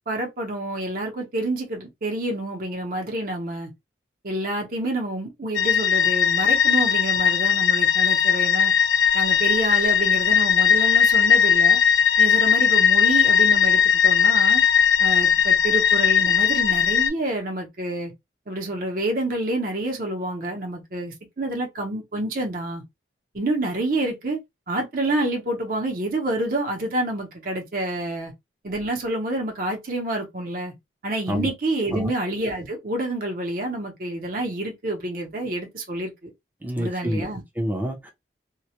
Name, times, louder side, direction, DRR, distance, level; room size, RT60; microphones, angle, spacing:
voice 1, 0.1-3.7 4.2-8.7 9.1-11.8 12.2-14.6 15.0-18.1 18.5-22.8 23.3-24.4 24.7-28.3 28.6-30.7 31.0-36.3 36.8-37.4, right 1 dB, 50° right, 0.7 m, -28 dB
sound 1, 5.5-17.1, left 7 dB, 85° left, 0.5 m, -18 dB
voice 2, 31.8-32.1 36.6-37.3 37.6-38.1, equal, 10° right, 0.5 m, -27 dB
2.2 x 2.1 x 2.8 m
head